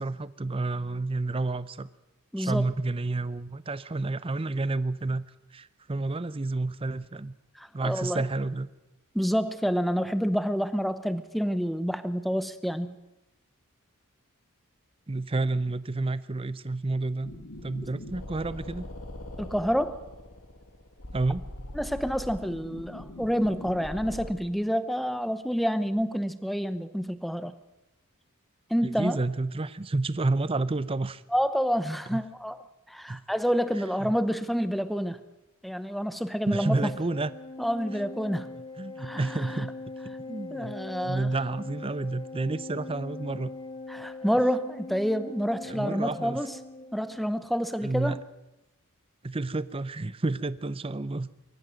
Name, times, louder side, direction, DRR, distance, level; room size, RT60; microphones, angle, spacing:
voice 1, 0.0-1.9 2.4-5.2 5.5-7.3 7.7-8.7 15.1-17.3 17.6-18.9 21.1-21.5 28.8-31.2 32.1-32.2 33.1-33.2 34.0-34.2 36.5-37.3 38.8-39.7 40.0-40.8 41.0-43.6 45.7-46.5 47.8-48.2 49.2-51.3, right 2 dB, 25° right, 16 dB, 0.6 m, -30 dB
voice 2, 2.3-2.7 7.6-8.2 9.1-12.9 19.4-20.0 21.7-27.5 28.7-29.2 31.3-32.6 32.9-35.2 35.6-36.9 37.6-38.5 39.0-39.6 40.5-41.3 43.9-46.5 46.9-48.2, equal, ahead, 12 dB, 0.8 m, -28 dB
sound 1, 17.2-24.3, left 1 dB, 70° left, 2.2 m, -42 dB
Organ, 36.5-47.3, left 3 dB, 20° left, 2.4 m, -41 dB
23.5 x 14.5 x 7.7 m, 0.97 s
head